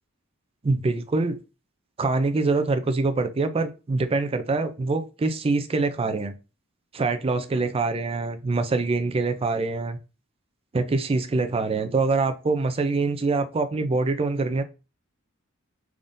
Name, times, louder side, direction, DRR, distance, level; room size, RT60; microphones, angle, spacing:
voice 1, 0.6-1.4 2.0-6.4 6.9-10.0 10.7-14.6, right 3 dB, 25° right, 8 dB, 0.4 m, -24 dB
3.6 x 3.5 x 2.6 m, 0.30 s
head